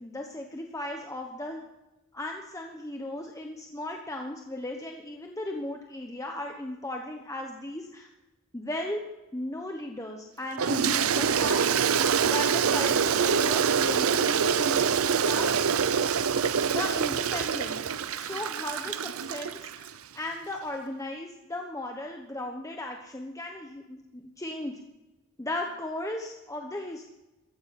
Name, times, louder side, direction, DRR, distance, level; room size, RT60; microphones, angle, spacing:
voice 1, 0.0-1.6 2.1-8.1 8.5-9.0 9.3-11.6 12.2-15.7 16.7-24.8 25.4-27.1, left 1 dB, 15° left, 2 dB, 1.0 m, -36 dB
Toilet flush, 10.6-19.9, right 6 dB, 85° right, 0.6 m, -25 dB
15.0 x 14.5 x 4.3 m, 1.0 s
head